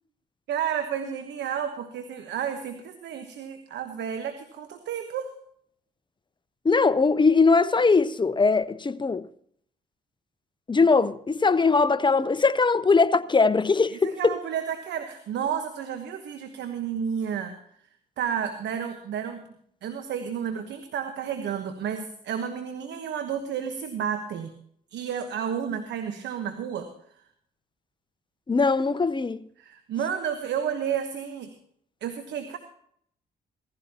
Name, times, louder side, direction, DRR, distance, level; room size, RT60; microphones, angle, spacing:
voice 1, 0.5-5.3 13.9-17.6 18.2-19.5 19.8-24.5 24.9-26.9 29.6-31.5 32.0-32.6, right 8 dB, 70° right, 1.2 m, -31 dB
voice 2, 6.6-9.3 10.7-14.3 28.5-29.4, left 4 dB, 25° left, 0.8 m, -21 dB
17.0 x 15.0 x 2.9 m
hypercardioid pair, 50°, 19 cm